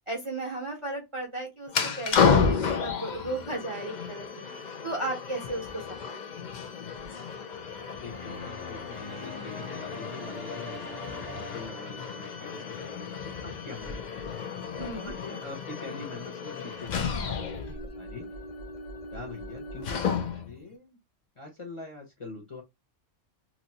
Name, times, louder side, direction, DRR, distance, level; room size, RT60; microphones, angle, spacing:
voice 1, 0.1-4.4 4.8-6.4 14.8-15.1, right 2 dB, 30° right, 0.8 m, -35 dB
sound 1, 1.7-20.6, left 6 dB, 50° left, 0.5 m, -32 dB
voice 2, 8.0-14.1 14.8-18.3 19.1-21.0 21.4-22.6, left 3 dB, 30° left, 0.8 m, -44 dB
sound 2, 8.1-12.6, left 2 dB, 75° left, 1.5 m, -42 dB
2.9 x 2.6 x 2.7 m
omnidirectional pair, 1.3 m